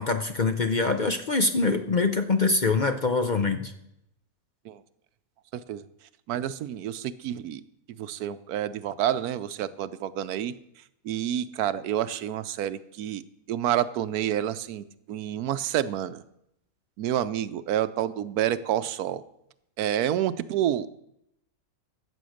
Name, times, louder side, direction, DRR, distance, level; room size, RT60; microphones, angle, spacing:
voice 1, 0.0-3.7, left 3 dB, 45° left, 7 dB, 0.6 m, -24 dB
voice 2, 5.5-5.8 6.3-7.6 8.0-10.5 11.0-13.2 13.5-16.2 17.0-19.2 19.8-21.0, right 11 dB, 90° right, 14 dB, 1.2 m, -29 dB
14.0 x 7.7 x 6.4 m, 0.81 s
omnidirectional pair, 1.6 m